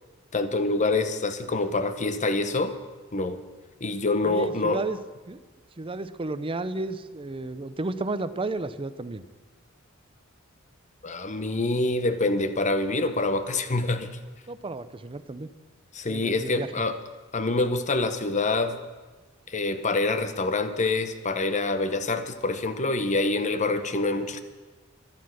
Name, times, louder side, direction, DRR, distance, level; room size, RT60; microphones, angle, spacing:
voice 1, 0.3-2.8 3.1-3.4 3.8-4.8 11.0-14.1 15.9-17.0 17.3-18.8 19.5-24.4, left 2 dB, 35° left, 10 dB, 0.9 m, -26 dB
voice 2, 4.2-5.0 5.3-5.4 5.8-9.2 14.5-15.5 16.1-16.7, right 2 dB, 25° right, 14 dB, 0.6 m, -32 dB
13.5 x 11.5 x 6.3 m, 1.3 s
head